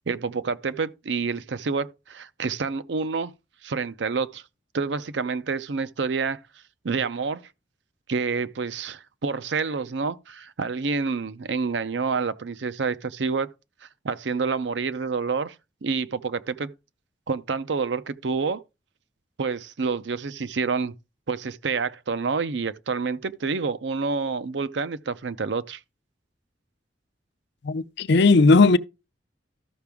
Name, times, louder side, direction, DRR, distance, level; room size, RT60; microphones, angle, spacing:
voice 1, 0.1-3.3 3.6-4.4 4.7-6.4 6.8-7.4 8.1-13.5 14.0-15.5 15.8-16.7 17.3-18.6 19.4-20.9 21.3-25.8, right 4 dB, 70° right, 0.6 m, -28 dB
voice 2, 27.6-28.8, left 3 dB, 65° left, 0.5 m, -16 dB
13.0 x 5.9 x 3.5 m
head